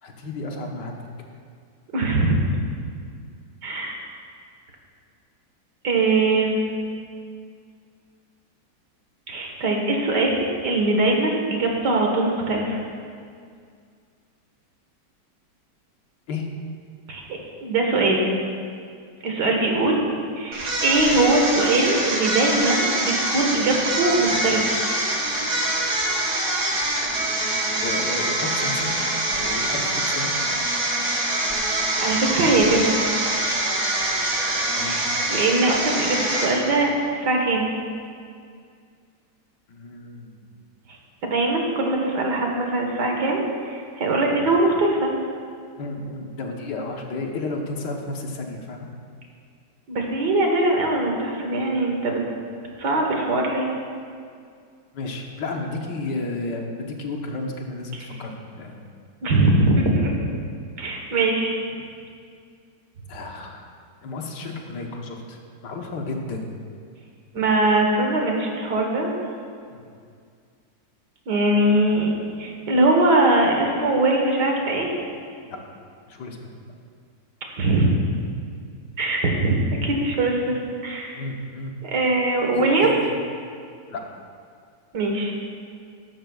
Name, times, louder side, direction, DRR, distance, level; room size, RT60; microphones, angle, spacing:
voice 1, 0.0-1.1 16.3-16.5 27.8-29.0 29.3-30.3 34.7-35.0 39.7-40.5 45.8-48.9 54.9-58.8 63.1-63.7 64.0-66.5 69.7-69.9 75.4-75.6 76.1-76.5 80.4-80.5 81.1-81.7 82.5-83.0 83.9-84.0, left 2 dB, 75° left, 2 dB, 1.7 m, -32 dB
voice 2, 1.9-2.4 3.6-4.0 5.8-6.7 9.3-12.8 17.1-17.2 17.6-18.3 19.2-20.0 20.4-24.8 32.0-33.1 34.8-35.0 35.3-37.7 41.2-45.1 49.9-52.2 52.8-53.7 59.2-60.2 60.8-61.6 67.3-69.2 71.3-72.1 72.4-74.9 77.6-77.9 79.0-81.2 81.8-83.0 84.9-85.3, right 2 dB, 70° right, 1 dB, 2.0 m, -21 dB
sound 1, 20.5-36.8, right 1 dB, 55° right, 2.3 m, -24 dB
13.5 x 12.0 x 2.4 m, 2.2 s
omnidirectional pair, 1.9 m